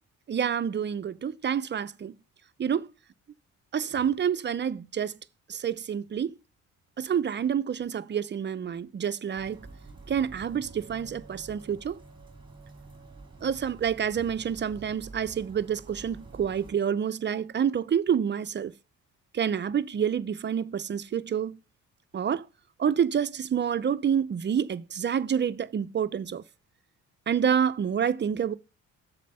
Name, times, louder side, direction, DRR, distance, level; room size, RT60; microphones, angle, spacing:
voice 1, 0.3-2.1 2.6-2.9 3.7-5.1 5.5-6.3 7.0-9.7 10.1-12.0 13.4-18.7 19.3-21.6 22.1-22.4 22.8-26.4 27.3-28.5, right 8 dB, 35° right, 0.6 m, -28 dB
sound 1, 9.3-16.7, right 3 dB, 15° right, 2.2 m, -48 dB
7.4 x 4.4 x 6.6 m
cardioid pair, 90°, 30 cm